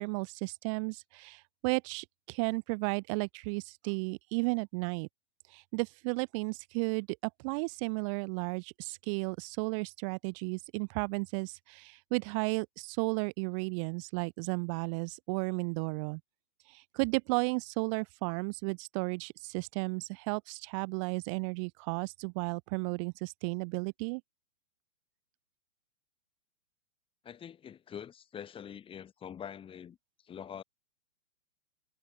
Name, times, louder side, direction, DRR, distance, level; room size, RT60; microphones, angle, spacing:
voice 1, 0.0-5.1 5.5-16.2 16.6-24.2, right 35 dB, 25° right, 0.8 m, -34 dB
voice 2, 27.2-30.0 30.2-30.6, left 8 dB, 15° left, 2.7 m, -45 dB
hypercardioid pair, 155°, 38 cm